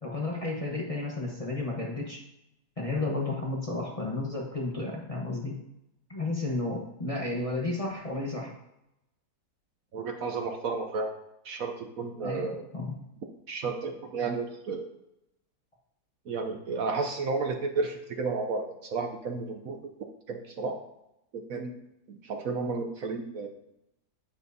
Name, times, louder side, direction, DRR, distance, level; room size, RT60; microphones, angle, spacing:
voice 1, 0.0-2.2 2.8-5.6 6.1-8.5 12.2-13.0, left 2 dB, 25° left, -2 dB, 1.1 m, -32 dB
voice 2, 9.9-11.1 11.4-12.6 13.5-14.9 16.3-19.8 20.3-20.8 21.3-21.7 22.1-23.5, right 4 dB, 60° right, 4 dB, 1.1 m, -32 dB
9.5 x 8.9 x 2.7 m, 0.85 s
omnidirectional pair, 1.8 m